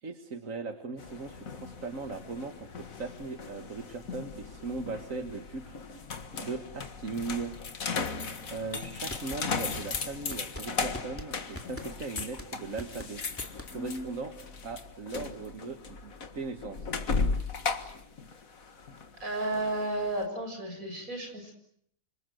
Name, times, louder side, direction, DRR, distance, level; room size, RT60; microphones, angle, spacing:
voice 1, 0.0-6.0 6.4-7.5 8.5-13.2 13.7-14.3 14.6-16.9, right 4 dB, 70° right, 7 dB, 2.0 m, -39 dB
sound 1, 1.0-20.2, left 4 dB, 85° left, 2.1 m, -37 dB
sound 2, 8.9-14.0, left 1 dB, 10° left, 2.4 m, -44 dB
voice 2, 19.2-21.5, right 1 dB, 85° right, 4 dB, 7.4 m, -32 dB
28.5 x 26.0 x 8.0 m, 0.69 s
omnidirectional pair, 1.4 m